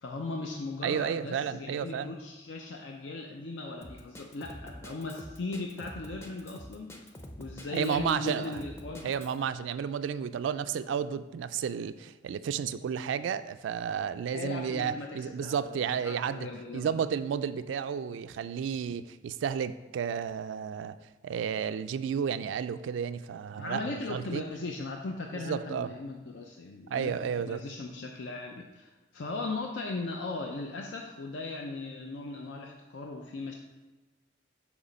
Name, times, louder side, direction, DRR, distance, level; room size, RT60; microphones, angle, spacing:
voice 1, 0.0-7.1 7.4-9.1 14.3-16.9 23.5-33.5, left 3 dB, 85° left, 1 dB, 0.5 m, -38 dB
voice 2, 0.8-2.1 7.7-8.5 9.0-16.5 16.7-21.0 21.2-24.4 25.3-25.9 26.9-27.6, right 7 dB, 85° right, 13 dB, 0.3 m, -32 dB
Drum kit, 3.8-9.4, equal, 15° left, 0.5 m, -46 dB
8.2 x 3.0 x 5.1 m, 1.2 s
head